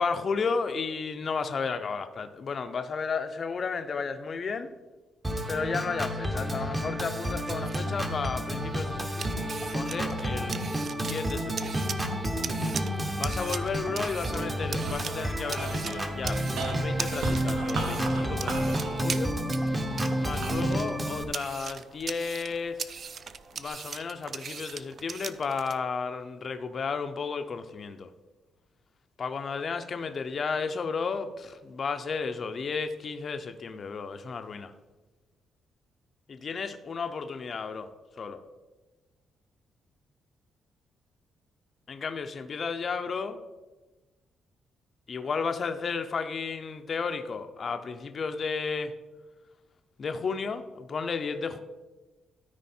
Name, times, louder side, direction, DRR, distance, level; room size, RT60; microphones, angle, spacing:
voice 1, 0.0-4.7 5.5-11.8 13.2-19.3 20.2-22.8 23.5-28.1 29.2-34.7 36.3-37.9 38.2-38.4 41.9-43.4 45.1-48.9 50.0-51.6, left 5 dB, 35° left, 7 dB, 0.5 m, -33 dB
Organ, 5.2-21.2, equal, 15° right, 0.7 m, -30 dB
sound 1, 7.2-25.8, right 6 dB, 35° right, 0.3 m, -41 dB
sound 2, 13.9-22.4 22.9-23.7, right 3 dB, 75° right, 1.2 m, -39 dB
13.0 x 4.9 x 4.2 m, 1.2 s
cardioid pair, 180°, 0 cm